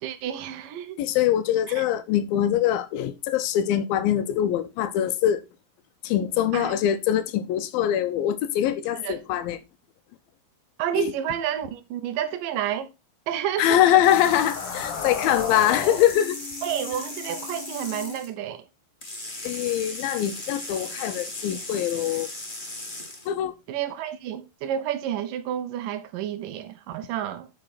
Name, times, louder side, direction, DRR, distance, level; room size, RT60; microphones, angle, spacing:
voice 1, 0.0-1.0 1.8-1.9 6.5-6.7 9.0-9.2 10.8-12.9 13.3-13.9 16.6-18.7 23.7-27.5, right 10 dB, 80° right, 2.0 m, -30 dB
voice 2, 1.0-5.4 6.0-9.6 11.0-11.1 13.6-16.4 19.4-22.3 23.3-23.5, left 11 dB, 75° left, 2.2 m, -23 dB
sound 1, 13.8-18.2, left 6 dB, 60° left, 2.3 m, -35 dB
sound 2, 14.0-18.3 19.0-23.3, left 2 dB, 35° left, 0.7 m, -37 dB
9.6 x 5.9 x 4.1 m
omnidirectional pair, 5.0 m